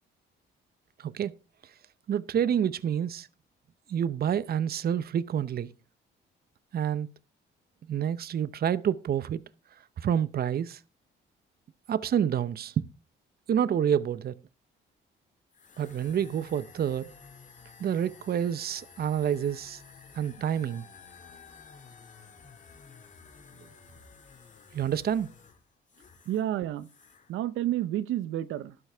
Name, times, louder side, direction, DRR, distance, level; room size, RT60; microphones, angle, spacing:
voice 1, 1.0-1.3 2.1-3.3 3.9-5.7 6.7-7.1 7.9-9.4 10.0-10.8 11.9-12.8 13.5-14.4 15.8-17.1 17.8-19.8 20.1-20.9 24.7-25.3, right 9 dB, 50° right, 0.7 m, -28 dB
sound 1, 15.5-26.5 26.8-27.3, left 5 dB, 40° left, 2.3 m, -52 dB
voice 2, 26.3-26.9 27.3-28.8, right 12 dB, 85° right, 0.8 m, -30 dB
12.0 x 11.0 x 3.5 m
cardioid pair, 90°, 20 cm